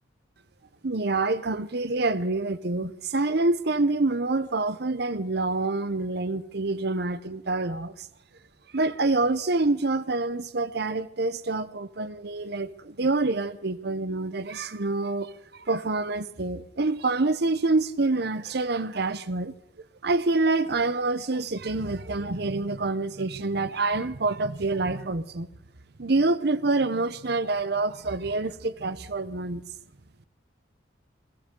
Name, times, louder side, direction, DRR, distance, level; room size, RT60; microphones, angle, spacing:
voice 1, 0.8-7.9 8.7-15.3 15.7-19.5 20.0-25.5 26.0-29.6, right 3 dB, 60° right, 0.8 m, -26 dB
21.0 x 16.5 x 3.8 m
head